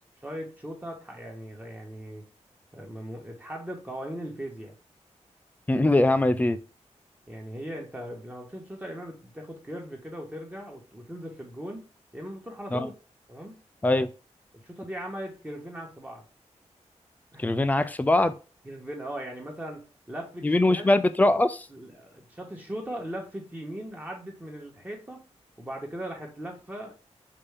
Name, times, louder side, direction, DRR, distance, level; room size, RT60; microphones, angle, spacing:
voice 1, 0.2-2.3 2.7-4.7 7.3-11.8 12.1-12.9 13.3-13.6 14.6-16.2 17.3-17.6 18.6-19.8 20.1-20.9 21.7-25.2 25.6-26.9, equal, 15° right, 0 dB, 1.2 m, -39 dB
voice 2, 5.7-6.6 12.7-12.9 13.8-14.1 17.4-18.3 20.4-21.7, left 2 dB, 15° left, 11 dB, 0.3 m, -22 dB
5.2 x 2.7 x 3.4 m, 0.34 s
wide cardioid pair, 135°, 12 cm